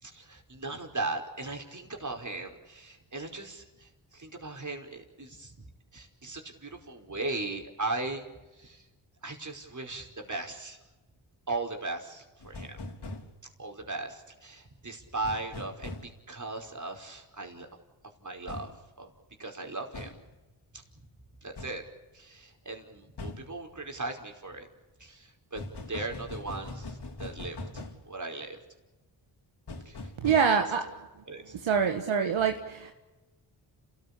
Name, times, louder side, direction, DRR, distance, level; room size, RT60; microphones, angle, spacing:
voice 1, 0.0-5.5 5.9-8.2 8.5-8.9 9.2-10.8 11.5-12.8 13.6-17.7 18.2-18.7 19.0-19.1 19.4-20.1 20.7-20.8 21.4-21.8 22.1-24.7 25.0-25.6 25.9-28.6 29.9-30.6 31.3-31.6, right 3 dB, 35° right, 3 dB, 5.1 m, -38 dB
sound 1, 12.4-13.3 15.2-16.1 18.5-18.7 19.9-20.2 21.6-21.8 23.2-23.4 25.5-28.0 29.7-30.4, left 2 dB, 55° left, 3.9 m, -40 dB
voice 2, 30.2-30.8 31.6-32.9, right 6 dB, 70° right, 5 dB, 1.7 m, -25 dB
30.0 x 14.5 x 8.5 m, 1.1 s
supercardioid pair, 45°, 49 cm